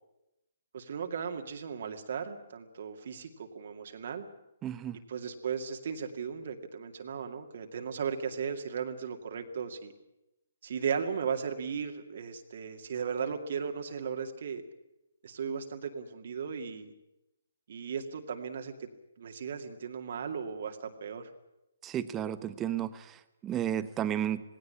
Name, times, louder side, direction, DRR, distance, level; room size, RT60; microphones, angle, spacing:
voice 1, 0.7-4.2 5.1-9.9 10.6-14.6 15.2-16.9 17.7-18.9 19.2-21.3, right 6 dB, 55° right, 5 dB, 2.3 m, -36 dB
voice 2, 4.6-5.0 21.8-23.0 23.4-24.4, right 10 dB, 15° right, 13 dB, 1.0 m, -32 dB
18.5 x 17.5 x 9.9 m, 0.91 s
hypercardioid pair, 145°, 0 cm